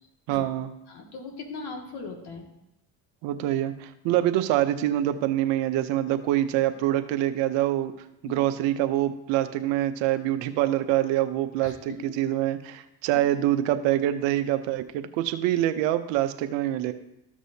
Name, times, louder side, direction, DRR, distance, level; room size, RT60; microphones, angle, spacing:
voice 1, 0.3-0.7 3.2-7.9 8.2-16.9, right 13 dB, 80° right, 10 dB, 0.7 m, -25 dB
voice 2, 0.9-2.5 8.2-8.4 11.6-11.7 13.1-13.2, left 3 dB, 60° left, 1 dB, 2.1 m, -39 dB
14.0 x 6.2 x 2.8 m, 0.87 s
supercardioid pair, 75°, 43 cm